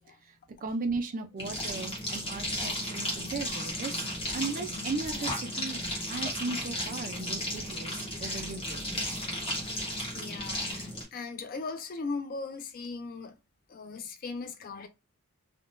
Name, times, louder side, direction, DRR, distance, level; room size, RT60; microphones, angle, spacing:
voice 1, 0.6-4.1 4.3-5.8 6.1-8.8, right 3 dB, 40° right, 0.4 m, -36 dB
sound 1, 1.4-11.0, left 1 dB, 25° left, 1.0 m, -34 dB
voice 2, 3.2-3.7 4.3-4.4 5.0-5.3 7.6-8.5 8.9-9.0 10.1-13.3 13.7-14.9, left 4 dB, 40° left, 0.3 m, -40 dB
3.6 x 2.2 x 2.5 m
head